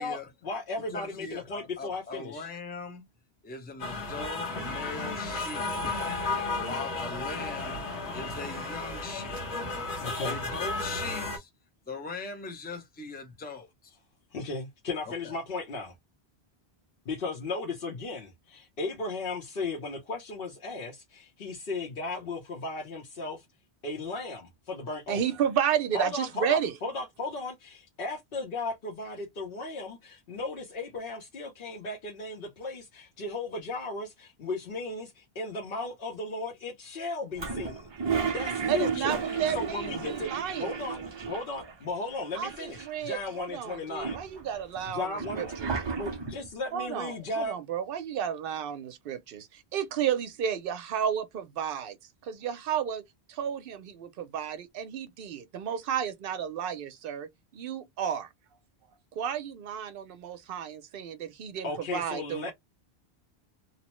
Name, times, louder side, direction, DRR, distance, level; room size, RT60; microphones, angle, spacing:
voice 1, 0.0-2.5 10.0-10.4 14.3-15.9 17.1-23.4 23.8-25.2 25.9-40.3 40.6-44.2 44.8-47.6 61.6-62.5, left 3 dB, 60° left, 0.9 m, -36 dB
voice 2, 0.9-3.0 3.4-5.9 6.6-7.8 8.1-9.7 10.2-11.5 11.9-14.0 15.2-15.4, left 3 dB, 10° left, 0.5 m, -40 dB
sound 1, 3.8-11.4, left 3 dB, 85° left, 1.3 m, -33 dB
voice 3, 25.1-26.7 38.7-40.7 42.3-45.8 46.7-49.5 49.7-52.0 52.3-53.0 53.3-57.3 57.5-58.3 59.2-62.5, right 8 dB, 65° right, 0.7 m, -32 dB
Toilet flush, 37.4-41.7 42.0-42.1 42.3-43.2 43.7-46.5, right 5 dB, 45° right, 0.3 m, -33 dB
2.8 x 2.0 x 3.0 m
omnidirectional pair, 1.1 m